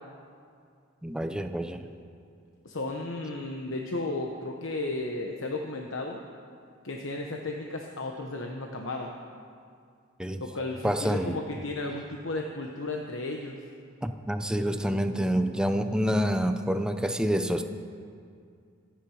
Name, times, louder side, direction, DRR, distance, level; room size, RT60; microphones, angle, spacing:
voice 1, 1.0-1.8 10.2-10.4 10.8-11.4 14.0-17.6, equal, 5° right, 7 dB, 0.7 m, -27 dB
voice 2, 2.6-6.2 6.8-9.1 10.4-13.6, left 2 dB, 70° left, 1 dB, 1.1 m, -34 dB
26.5 x 9.4 x 4.9 m, 2.3 s
head